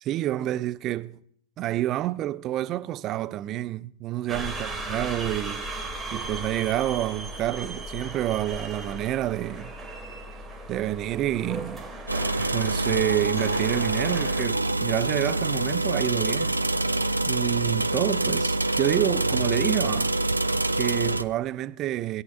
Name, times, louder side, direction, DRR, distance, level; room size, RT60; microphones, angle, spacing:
voice 1, 0.0-1.2 1.6-5.6 6.1-9.7 10.7-11.9 12.4-16.5 17.2-20.1 20.7-22.2, right 14 dB, 35° right, 0.5 m, -28 dB
sound 1, 4.3-14.5, right 2 dB, 10° right, 2.3 m, -37 dB
sound 2, 12.1-21.2, right 2 dB, 85° right, 0.5 m, -26 dB
19.5 x 9.4 x 2.5 m
figure-of-eight pair, 90°, 0 cm